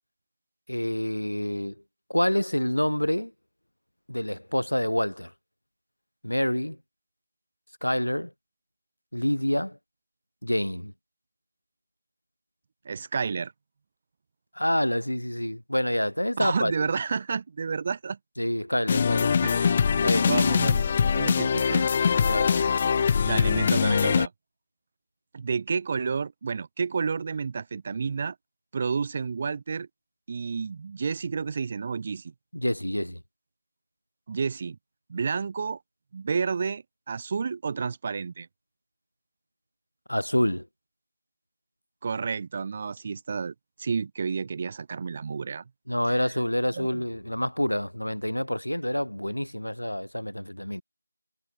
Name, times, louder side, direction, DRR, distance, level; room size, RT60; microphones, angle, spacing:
voice 1, 0.7-1.7 2.1-3.3 4.1-5.3 6.2-6.8 7.8-8.3 9.1-9.8 10.4-10.9 14.5-16.7 18.4-19.4 20.0-20.3 22.2-22.6 32.5-33.2 40.1-40.7 45.9-50.8, equal, 80° left, 2.7 m, -27 dB
voice 2, 12.8-13.5 16.4-18.2 19.4-19.8 20.2-21.9 23.2-24.3 25.3-28.3 28.7-29.9 30.3-32.3 34.3-34.8 35.1-35.8 36.1-38.5 42.0-43.5 43.8-45.6 46.8-46.9, right 5 dB, 25° right, 1.2 m, -30 dB
sound 1, 18.9-24.3, left 6 dB, 20° left, 0.8 m, -23 dB
figure-of-eight pair, 165°, 0 cm